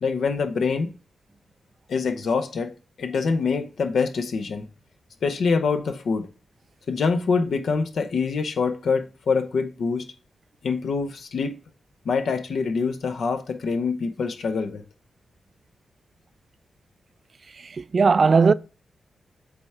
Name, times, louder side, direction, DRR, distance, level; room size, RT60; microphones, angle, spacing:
voice 1, 0.0-0.9 1.9-2.7 3.0-4.7 5.2-6.3 6.9-10.1 10.6-11.6 12.0-14.8, left 5 dB, 75° left, 0.9 m, -25 dB
voice 2, 17.6-18.5, right 5 dB, 50° right, 0.3 m, -18 dB
7.8 x 3.6 x 4.3 m
cardioid pair, 65°, 0 cm